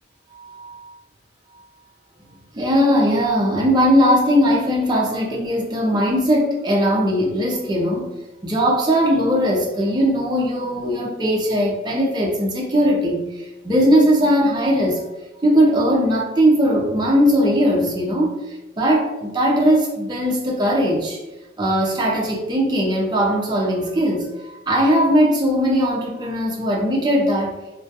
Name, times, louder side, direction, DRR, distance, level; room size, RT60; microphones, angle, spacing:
voice 1, 0.3-0.9 2.5-8.2 8.4-15.0 15.4-18.4 18.8-21.2 21.6-27.6, equal, 20° right, -2 dB, 0.4 m, -19 dB
2.2 x 2.2 x 2.6 m, 1.1 s
head